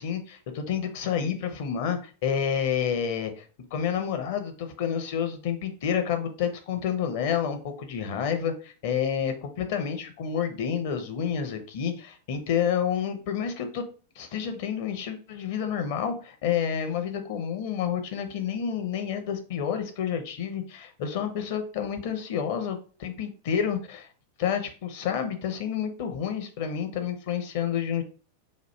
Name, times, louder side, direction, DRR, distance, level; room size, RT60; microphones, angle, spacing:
voice 1, 0.0-3.4 3.7-13.8 14.2-24.1 24.4-28.0, left 8 dB, 50° left, 7 dB, 0.7 m, -29 dB
3.0 x 2.4 x 4.3 m, 0.38 s
figure-of-eight pair, 90°, 0 cm